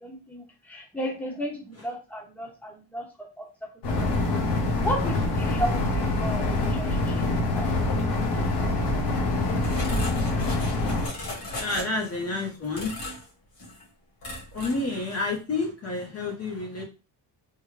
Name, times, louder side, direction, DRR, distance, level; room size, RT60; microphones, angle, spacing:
voice 1, 0.0-3.0 3.4-3.5 3.9-4.4 4.8-7.7, equal, 5° left, -1 dB, 0.9 m, -34 dB
sound 1, 3.8-11.1, left 2 dB, 75° left, 1.1 m, -25 dB
sound 2, 9.6-12.2 12.7-13.3 13.6-13.8 14.2-14.9 15.1-15.3, left 2 dB, 60° left, 1.6 m, -37 dB
voice 2, 11.4-13.0 14.5-16.8, left 3 dB, 35° left, 0 dB, 0.7 m, -29 dB
3.6 x 2.2 x 3.1 m, 0.30 s
cardioid pair, 150°, 41 cm